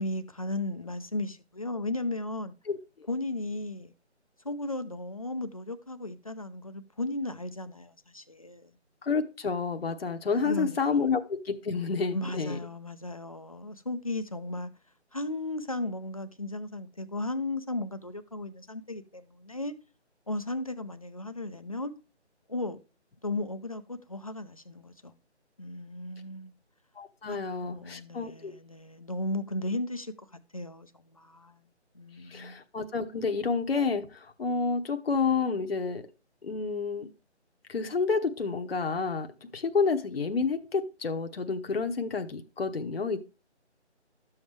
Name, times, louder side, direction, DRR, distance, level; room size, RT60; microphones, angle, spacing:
voice 1, 0.0-2.5 3.1-3.9 4.4-8.7 10.4-11.0 12.1-14.7 15.1-19.7 20.3-21.9 22.5-22.8 23.2-25.1 25.6-26.5 27.3-27.4 27.6-30.1 30.5-31.6 31.9-32.6, left 2 dB, 30° left, 0.6 m, -35 dB
voice 2, 9.0-12.6 27.0-28.5 32.3-36.1 36.4-37.1 37.7-43.2, left 4 dB, 55° left, 1.0 m, -29 dB
12.5 x 7.2 x 3.3 m
figure-of-eight pair, 165°, 35 cm